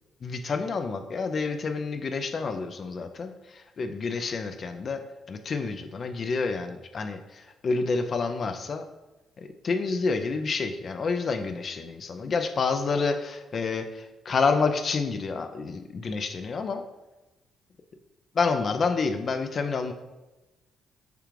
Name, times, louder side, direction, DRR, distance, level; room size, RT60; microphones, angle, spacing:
voice 1, 0.2-3.3 3.8-5.0 5.3-7.2 7.6-8.8 9.4-13.8 14.3-16.8 18.4-19.9, left 4 dB, 45° left, 7 dB, 0.3 m, -28 dB
6.6 x 2.4 x 3.1 m, 1.1 s
cardioid pair, 90°, 0 cm